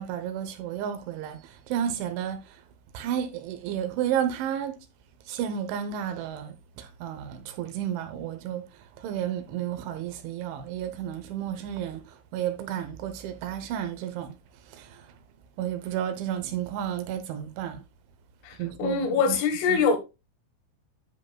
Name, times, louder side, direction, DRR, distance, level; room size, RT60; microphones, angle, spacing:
voice 1, 0.0-2.6 2.9-4.8 5.3-14.3 14.7-15.1 15.6-17.8 18.6-19.4 19.7-19.8, right 10 dB, 75° right, 3.2 m, -32 dB
voice 2, 18.4-20.0, left 5 dB, 80° left, 4.0 m, -24 dB
10.5 x 7.7 x 2.3 m
omnidirectional pair, 5.7 m